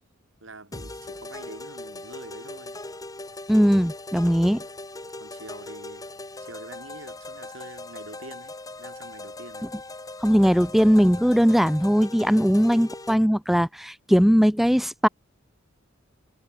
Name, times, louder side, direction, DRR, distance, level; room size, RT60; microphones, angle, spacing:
voice 1, 0.4-2.7 4.4-4.7 5.2-6.1 6.4-9.7, right 2 dB, 75° right, 5.9 m, -45 dB
sound 1, 0.7-13.2, left 2 dB, 20° left, 1.6 m, -40 dB
voice 2, 3.5-4.6 10.2-15.1, equal, ahead, 0.9 m, -19 dB
head